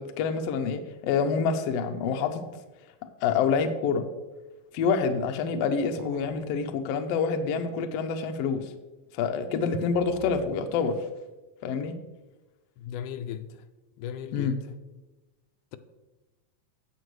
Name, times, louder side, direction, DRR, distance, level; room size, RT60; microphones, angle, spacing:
voice 1, 0.0-2.4 3.2-4.0 4.7-8.7 9.1-11.0 11.6-12.0 14.3-14.5, left 5 dB, 70° left, 1.6 m, -27 dB
sound 1, 6.0-6.5 10.0-10.5, right 1 dB, 75° right, 2.3 m, -47 dB
voice 2, 12.8-13.6 14.0-14.6, left 9 dB, 90° left, 2.1 m, -36 dB
16.0 x 6.0 x 3.2 m
omnidirectional pair, 3.5 m